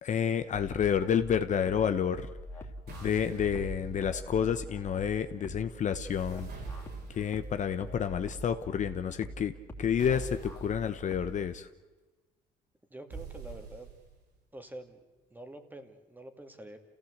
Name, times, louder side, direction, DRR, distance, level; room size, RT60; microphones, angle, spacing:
voice 1, 0.0-2.3 2.9-6.5 7.1-9.5 9.8-11.7, left 8 dB, 45° left, 9 dB, 1.1 m, -29 dB
sound 1, 0.5-11.5, equal, 15° left, 3.1 m, -44 dB
sound 2, 2.9-4.5 5.9-7.4 10.0-10.8 13.1-14.2, right 3 dB, 70° right, 6.5 m, -44 dB
voice 2, 12.9-13.9 14.5-15.0 15.3-16.8, right 1 dB, 10° right, 7 dB, 2.4 m, -46 dB
28.5 x 16.5 x 8.1 m, 1.2 s
cardioid pair, 110°, 17 cm